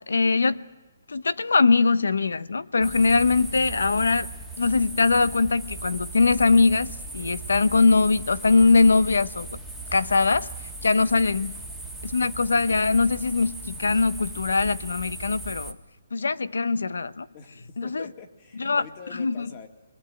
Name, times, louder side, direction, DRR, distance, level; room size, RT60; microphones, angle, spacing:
voice 1, 0.1-0.6 1.1-4.3 4.6-9.5 9.9-10.5 10.8-11.5 12.0-15.8 16.1-17.3 17.8-18.1 18.6-18.9 19.1-19.5, left 4 dB, 90° left, 0.9 m, -21 dB
sound 1, 2.8-15.7, right 2 dB, ahead, 1.6 m, -38 dB
voice 2, 17.8-19.7, left 6 dB, 30° left, 2.2 m, -45 dB
26.0 x 21.0 x 9.0 m
hypercardioid pair, 160°, 0 cm